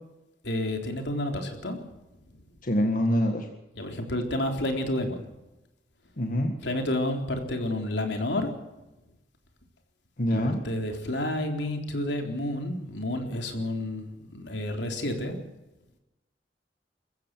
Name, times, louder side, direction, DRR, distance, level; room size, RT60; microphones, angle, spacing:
voice 1, 0.4-1.8 3.7-5.2 6.6-8.5 10.3-15.4, left 1 dB, 75° left, 4 dB, 3.9 m, -30 dB
voice 2, 2.6-3.5 6.2-6.5 10.2-10.6, equal, 50° left, 4 dB, 1.8 m, -25 dB
23.0 x 15.0 x 7.7 m, 0.99 s
head